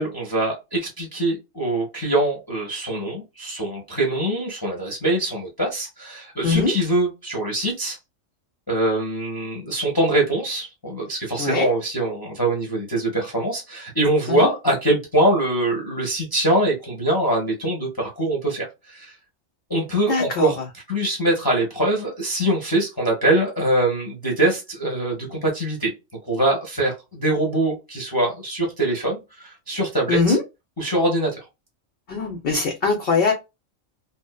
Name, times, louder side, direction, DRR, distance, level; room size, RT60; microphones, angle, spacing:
voice 1, 0.0-8.0 8.7-19.2 19.7-20.6 20.9-25.9 26.2-30.4 30.8-31.5, right 1 dB, 20° left, 0.6 m, -23 dB
voice 2, 6.4-6.7 11.4-11.7 14.3-14.5 20.1-20.5 30.1-30.4 32.1-33.3, left 4 dB, 65° left, 0.6 m, -21 dB
2.7 x 2.0 x 2.2 m
omnidirectional pair, 1.4 m